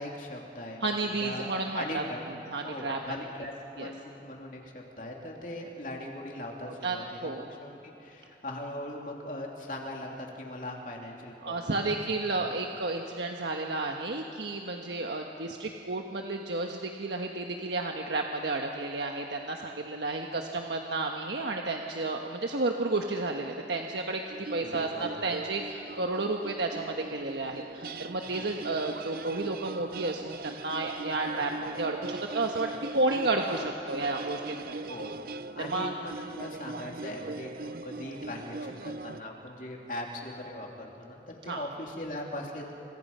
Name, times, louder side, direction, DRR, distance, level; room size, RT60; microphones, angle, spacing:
voice 1, 0.0-2.2 2.6-3.5 3.8-12.0 12.4-12.6 24.6-25.3 28.4-28.5 33.1-33.3 34.9-42.7, left 1 dB, 50° left, 0 dB, 3.2 m, -40 dB
voice 2, 0.8-2.0 2.5-3.0 3.8-3.9 6.8-7.4 11.4-34.8 35.6-35.9 41.5-41.6, right 2 dB, 80° right, 2 dB, 1.3 m, -32 dB
sound 1, 24.3-39.2, right 3 dB, 55° right, 0.6 m, -41 dB
29.0 x 26.0 x 5.6 m, 2.9 s
head